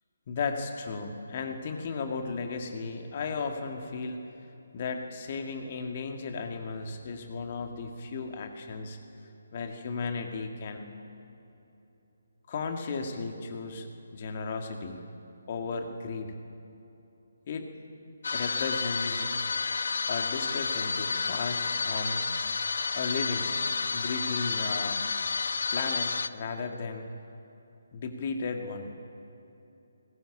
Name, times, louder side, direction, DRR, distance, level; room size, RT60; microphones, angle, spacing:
voice 1, 0.3-4.3 4.7-9.0 9.5-10.9 12.5-13.9 14.1-15.0 15.5-16.4 17.5-17.7 18.3-19.3 20.1-22.2 22.9-23.6 23.9-25.0 25.7-27.1 27.9-29.0, left 4 dB, 35° left, 4 dB, 2.2 m, -35 dB
sound 1, 18.2-26.3, left 4 dB, 55° left, 0.7 m, -30 dB
20.5 x 19.5 x 8.9 m, 2.9 s
figure-of-eight pair, 145°, 0 cm